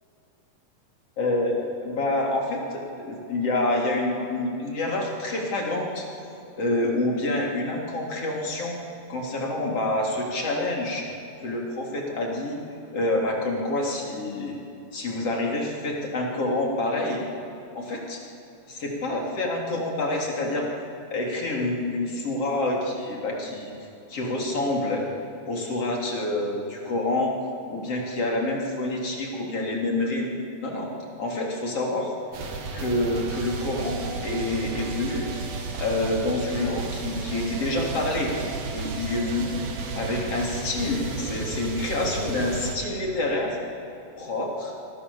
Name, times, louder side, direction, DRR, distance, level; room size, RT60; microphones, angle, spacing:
voice 1, 1.2-6.1 6.6-8.8 9.1-11.1 11.4-12.6 12.9-14.6 14.9-17.2 17.7-18.2 18.7-20.7 21.1-23.7 24.1-25.1 25.5-27.4 27.7-30.3 30.6-30.9 31.2-32.1 32.7-35.3 35.7-38.3 38.7-39.6 39.9-43.6 44.2-44.7, left 2 dB, 35° left, -1 dB, 4.0 m, -27 dB
sound 1, 32.3-42.8, right 4 dB, 55° right, 3.5 m, -33 dB
28.5 x 23.0 x 7.2 m, 2.7 s
omnidirectional pair, 5.0 m